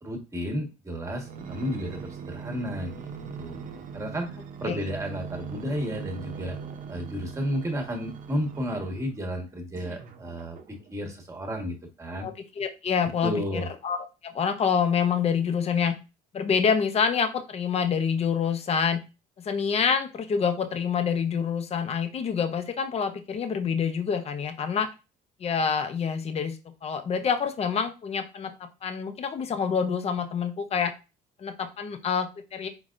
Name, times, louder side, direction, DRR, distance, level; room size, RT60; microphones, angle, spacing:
voice 1, 0.0-3.1 3.4-3.6 3.9-6.5 6.9-12.3 13.2-13.7, equal, 20° right, 2 dB, 1.4 m, -32 dB
sound 1, 1.2-9.2 9.8-11.0 11.6-11.7, right 6 dB, 50° right, 0.7 m, -40 dB
voice 2, 12.2-14.0 14.2-16.0 16.3-19.0 19.4-24.9 25.4-30.9 31.4-32.7, left 6 dB, 40° left, 8 dB, 0.7 m, -27 dB
4.7 x 4.0 x 2.5 m, 0.29 s
cardioid pair, 110°, 17 cm